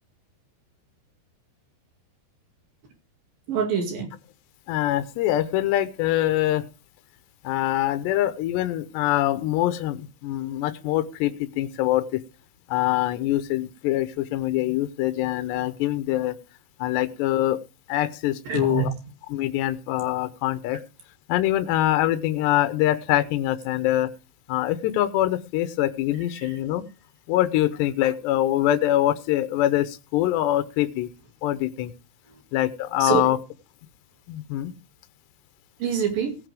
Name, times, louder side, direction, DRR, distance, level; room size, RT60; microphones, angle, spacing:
voice 1, 3.5-4.1 18.4-19.0 26.3-26.6 32.3-32.4 33.0-33.3 35.8-36.4, right 7 dB, 55° right, 4 dB, 3.9 m, -26 dB
voice 2, 4.7-6.6 7.4-12.2 12.7-16.4 16.8-17.6 17.9-18.9 19.3-20.8 21.3-24.1 24.5-26.8 27.3-31.1 31.4-31.9 32.5-33.4 34.3-34.7, left 14 dB, 80° left, 10 dB, 2.9 m, -24 dB
18.0 x 9.8 x 3.5 m, 0.31 s
omnidirectional pair, 5.1 m